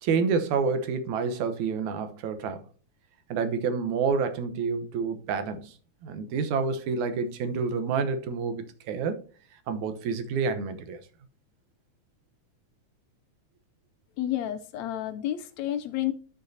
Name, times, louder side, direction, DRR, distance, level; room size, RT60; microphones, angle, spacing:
voice 1, 0.0-2.6 3.3-5.7 6.0-9.2 9.7-11.0, right 5 dB, 80° right, 2.5 m, -28 dB
voice 2, 14.2-16.1, left 12 dB, 80° left, 1.8 m, -30 dB
12.0 x 6.6 x 2.8 m
omnidirectional pair, 3.3 m